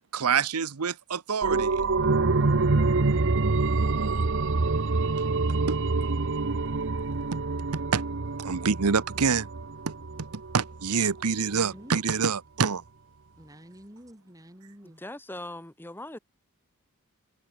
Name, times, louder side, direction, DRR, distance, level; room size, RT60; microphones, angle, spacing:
voice 1, 0.1-1.8 3.6-4.2 5.7-5.8 7.3-7.4 7.7-8.0 8.4-9.5 9.9-10.3 10.5-12.8, right 5 dB, 85° right, 0.9 m, -27 dB
sound 1, 1.4-10.8 11.1-11.2, right 3 dB, 55° right, 0.9 m, -26 dB
voice 2, 11.5-12.0 13.4-15.0, equal, 15° right, 7.8 m, -48 dB
voice 3, 14.8-16.2, left 1 dB, 10° left, 1.4 m, -40 dB
head